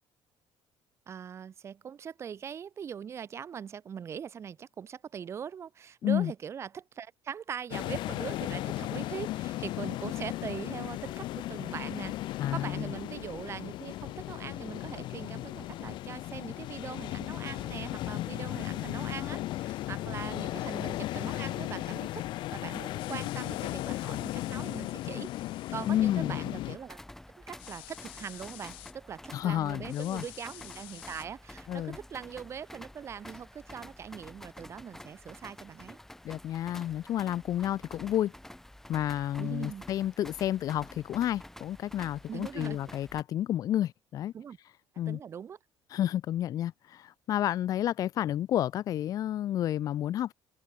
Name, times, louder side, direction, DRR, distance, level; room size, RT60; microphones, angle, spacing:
voice 1, 1.1-22.2 22.5-27.0 27.4-36.0 39.4-39.9 42.3-42.8 44.3-44.6 45.1-45.6, right 7 dB, 30° right, 0.9 m, -41 dB
sound 1, 7.7-26.8, left 16 dB, 65° left, 0.9 m, -36 dB
voice 2, 12.4-12.9 25.8-26.4 29.3-30.2 31.7-32.0 36.2-38.3 38.9-44.3 45.0-45.2 45.9-50.3, left 12 dB, 45° left, 0.4 m, -30 dB
sound 2, 23.0-26.0 27.6-28.9 29.9-31.2, left 21 dB, 90° left, 4.2 m, -50 dB
sound 3, 26.7-43.2, left 1 dB, 5° left, 3.2 m, -49 dB
cardioid pair, 150°, 9 cm